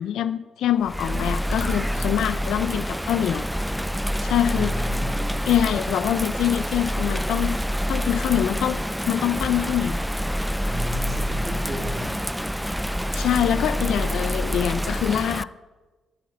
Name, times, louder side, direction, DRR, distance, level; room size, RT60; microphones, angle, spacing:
voice 1, 0.0-3.5 4.2-4.7 5.5-7.6 7.9-8.8 9.1-10.1 13.1-15.5, left 11 dB, 80° left, 14 dB, 0.5 m, -24 dB
Bird vocalization bird call bird song / Rain, 0.8-15.4, equal, ahead, 0.3 m, -27 dB
voice 2, 1.9-2.3 4.5-5.6 10.7-12.1 12.5-12.6, equal, 25° right, 1 dB, 3.6 m, -35 dB
11.5 x 8.4 x 7.8 m, 1.2 s
cardioid pair, 90°, 0 cm